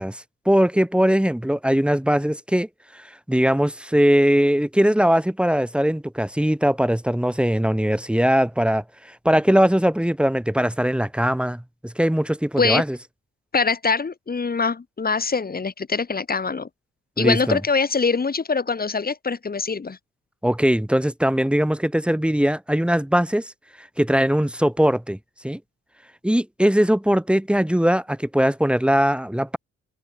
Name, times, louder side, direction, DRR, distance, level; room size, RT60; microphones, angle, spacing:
voice 1, 0.0-2.7 2.9-8.8 9.2-13.0 17.2-17.6 20.4-23.5 23.8-25.2 25.4-25.6 26.2-29.6, equal, 5° right, 4.7 m, -20 dB
voice 2, 13.5-16.7 17.2-20.0, left 4 dB, 30° left, 3.0 m, -23 dB
cardioid pair, 90°, 30 cm